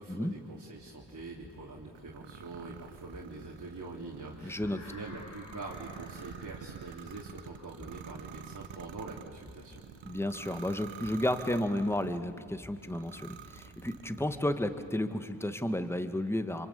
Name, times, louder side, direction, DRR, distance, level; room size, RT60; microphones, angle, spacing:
voice 1, 0.0-9.8, right 3 dB, 40° right, -3 dB, 3.5 m, -44 dB
sound 1, 0.7-14.9, left 1 dB, 25° left, 5.1 m, -56 dB
sound 2, 2.0-12.3 12.8-14.5, right 9 dB, 70° right, 1.2 m, -49 dB
sound 3, 4.3-10.2, left 2 dB, 75° left, 7.5 m, -55 dB
voice 2, 4.4-4.8 10.0-16.7, left 1 dB, 5° left, 9 dB, 1.7 m, -32 dB
26.5 x 24.5 x 8.6 m, 2.2 s
cardioid pair, 55°, 47 cm